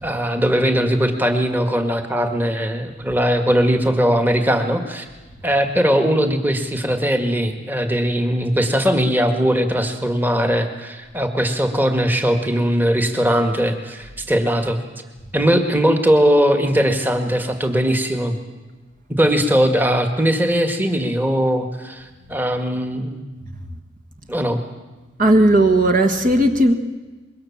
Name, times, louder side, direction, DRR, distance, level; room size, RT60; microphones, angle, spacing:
voice 1, 0.0-5.1 5.4-14.8 15.3-18.4 19.2-23.2 24.3-24.6, equal, 10° right, 6 dB, 1.7 m, -19 dB
voice 2, 25.2-26.7, right 1 dB, 40° right, 6 dB, 1.5 m, -15 dB
25.0 x 22.5 x 7.2 m, 1.2 s
head